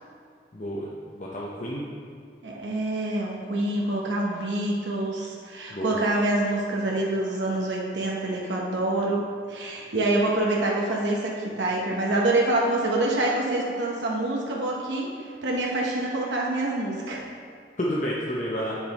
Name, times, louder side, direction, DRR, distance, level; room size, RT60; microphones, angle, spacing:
voice 1, 0.5-0.9 1.1-1.9 5.7-6.0 17.8-18.8, equal, 45° left, -5 dB, 0.7 m, -30 dB
voice 2, 2.4-9.2 9.5-15.1 15.4-17.2, right 2 dB, 85° right, -3 dB, 1.0 m, -26 dB
8.1 x 5.9 x 4.1 m, 2.2 s
head